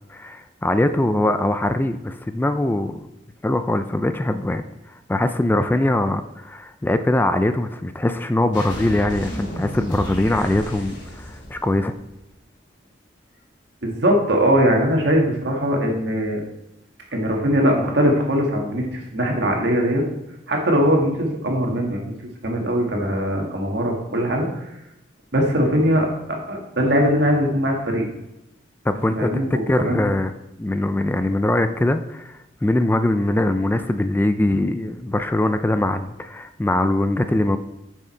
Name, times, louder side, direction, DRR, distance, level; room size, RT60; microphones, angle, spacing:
voice 1, 0.1-3.1 3.4-11.9 28.8-29.3 29.7-30.3 30.6-37.6, left 1 dB, 10° left, 9 dB, 0.3 m, -22 dB
sound 1, 8.5-12.2, equal, 90° left, 2.8 m, -33 dB
voice 2, 13.8-16.4 17.1-20.0 20.5-22.1 22.4-24.7 25.3-28.0 29.1-30.0, equal, 70° right, 0 dB, 1.8 m, -21 dB
7.0 x 6.4 x 4.4 m, 0.89 s
head